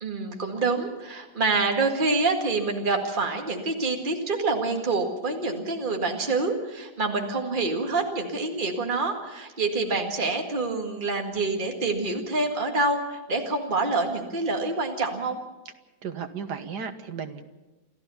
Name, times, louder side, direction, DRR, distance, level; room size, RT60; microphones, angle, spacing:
voice 1, 0.0-15.4, right 3 dB, 30° right, 3 dB, 2.1 m, -27 dB
voice 2, 16.0-17.4, right 6 dB, 75° right, 7 dB, 1.9 m, -34 dB
28.5 x 13.0 x 7.1 m, 1.1 s
omnidirectional pair, 1.8 m